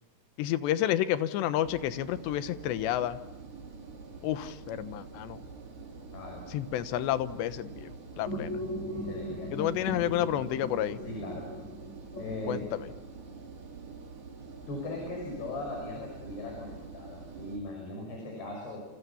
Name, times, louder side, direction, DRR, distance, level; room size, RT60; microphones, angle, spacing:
voice 1, 0.4-3.2 4.2-5.4 6.5-8.6 9.5-11.0 12.5-12.9, left 12 dB, 85° left, 13 dB, 3.3 m, -30 dB
Engine, 1.7-17.6, right 4 dB, 75° right, 6.7 m, -46 dB
voice 2, 6.1-6.5 8.9-9.9 11.0-11.5 12.2-12.6 14.7-18.8, left 2 dB, 65° left, 1 dB, 8.1 m, -39 dB
sound 1, 8.2-13.0, equal, 15° left, 6.2 m, -38 dB
29.0 x 28.0 x 7.1 m, 1.1 s
omnidirectional pair, 4.9 m